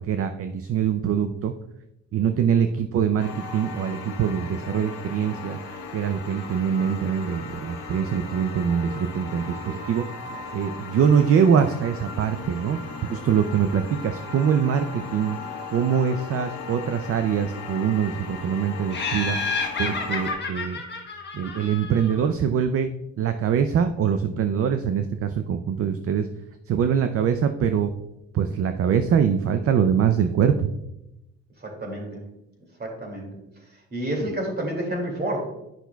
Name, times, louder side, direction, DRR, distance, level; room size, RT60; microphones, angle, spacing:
voice 1, 0.0-1.5 2.1-5.6 5.9-10.0 10.5-12.8 13.1-15.4 15.7-19.4 19.8-20.8 21.3-22.9 23.2-26.3 26.7-27.9 28.3-30.7, right 7 dB, 50° right, 8 dB, 0.5 m, -23 dB
sound 1, 3.2-20.3, left 4 dB, 85° left, 1.4 m, -37 dB
Laughter, 18.9-22.2, left 4 dB, 35° left, 1.3 m, -30 dB
voice 2, 31.6-32.2 32.8-33.4 33.9-35.4, right 1 dB, 30° right, 0 dB, 2.5 m, -29 dB
10.0 x 5.8 x 2.3 m, 0.89 s
cardioid pair, 90°, 30 cm